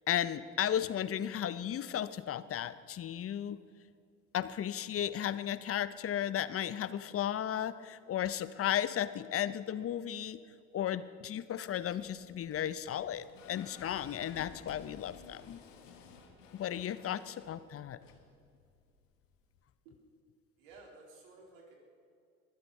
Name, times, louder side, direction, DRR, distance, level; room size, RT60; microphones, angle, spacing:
voice 1, 0.1-3.6 4.3-10.4 10.7-15.6 16.5-18.0, left 10 dB, 35° left, 14 dB, 0.7 m, -34 dB
sound 1, 11.9-19.6, left 6 dB, 85° left, 1.7 m, -56 dB
voice 2, 20.6-21.7, right 3 dB, 70° right, -1 dB, 3.8 m, -55 dB
22.5 x 7.9 x 5.4 m, 2.3 s
hypercardioid pair, 70°, 38 cm